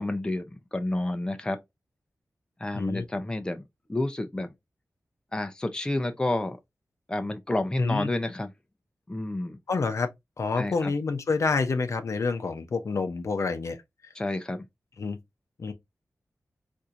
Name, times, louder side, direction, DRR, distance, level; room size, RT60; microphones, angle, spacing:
voice 1, 0.0-1.6 2.6-3.6 3.9-4.5 5.3-6.6 7.1-8.5 9.1-9.6 10.6-10.9 14.1-14.6, left 2 dB, 15° left, 0.5 m, -30 dB
voice 2, 2.7-3.0 7.8-8.1 9.7-10.1 10.4-13.8 15.0-15.2 15.6-15.7, left 4 dB, 60° left, 0.6 m, -28 dB
4.3 x 2.6 x 2.4 m
wide cardioid pair, 115°, 6 cm